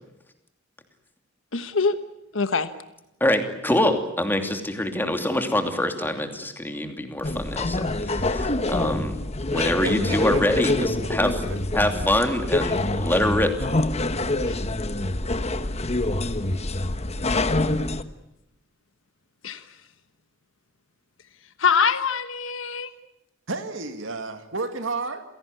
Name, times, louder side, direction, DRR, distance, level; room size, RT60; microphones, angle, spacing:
voice 1, 1.5-2.0 2.3-2.7 14.4-14.6 19.4-19.8 21.6-22.9, left 5 dB, 75° left, 11 dB, 1.3 m, -24 dB
voice 2, 3.2-9.1 9.5-11.3 11.7-13.5, left 1 dB, 10° left, 6 dB, 2.9 m, -25 dB
sound 1, 7.2-18.0, left 2 dB, 35° left, 1.2 m, -26 dB
voice 3, 9.5-11.1 23.5-25.2, right 3 dB, 75° right, 8 dB, 2.2 m, -32 dB
28.5 x 17.5 x 9.7 m, 0.84 s
head